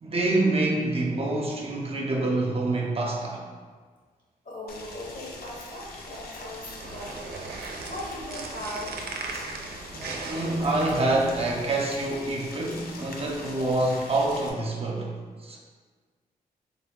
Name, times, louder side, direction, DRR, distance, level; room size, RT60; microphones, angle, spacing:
voice 1, 0.0-3.4 7.5-7.6 9.9-15.1 15.4-15.6, right 2 dB, 40° right, -1 dB, 0.6 m, -26 dB
voice 2, 4.4-7.2 7.8-9.0, left 1 dB, 55° left, -5 dB, 1.4 m, -38 dB
Boiling, 4.7-14.5, left 2 dB, 80° left, 0.5 m, -43 dB
sound 1, 6.6-11.6, right 4 dB, 80° right, 0.4 m, -38 dB
3.7 x 2.2 x 3.6 m, 1.5 s
cardioid pair, 75°, 16 cm